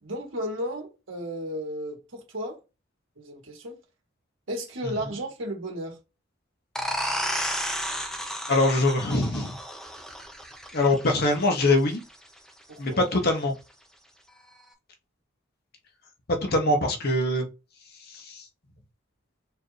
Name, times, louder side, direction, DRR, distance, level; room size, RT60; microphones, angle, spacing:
voice 1, 0.0-2.6 3.2-3.8 4.5-6.0 12.7-13.0, equal, 75° right, 1.7 m, -34 dB
sound 1, 6.7-12.1, equal, ahead, 0.6 m, -32 dB
voice 2, 7.1-7.6 8.5-9.6 10.7-12.0 12.8-13.5 16.4-17.5 18.1-18.4, left 2 dB, 50° left, 0.9 m, -23 dB
4.4 x 2.6 x 3.1 m
head